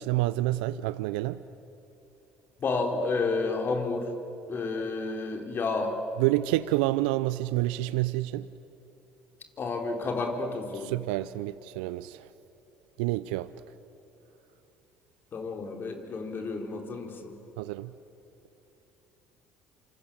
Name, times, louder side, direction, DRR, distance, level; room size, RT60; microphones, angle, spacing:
voice 1, 0.0-1.4 6.2-8.5 10.7-12.3 13.0-13.5 17.6-17.9, right 17 dB, 80° right, 16 dB, 0.5 m, -28 dB
voice 2, 2.6-4.1 4.5-6.0 9.6-10.9 15.3-17.4, left 3 dB, 45° left, 4 dB, 4.2 m, -30 dB
27.5 x 27.0 x 7.7 m, 3.0 s
hypercardioid pair, 65°, 5 cm